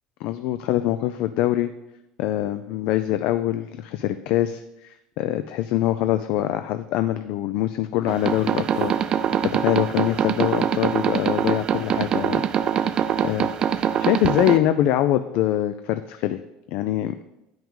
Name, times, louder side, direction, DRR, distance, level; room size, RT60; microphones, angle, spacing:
voice 1, 0.2-1.7 2.2-12.4 13.2-16.4 16.7-17.1, left 13 dB, 65° left, 11 dB, 0.3 m, -24 dB
sound 1, 8.1-14.6, right 8 dB, 35° right, 0.3 m, -23 dB
8.8 x 5.9 x 3.7 m, 0.93 s
cardioid pair, 135°, 2 cm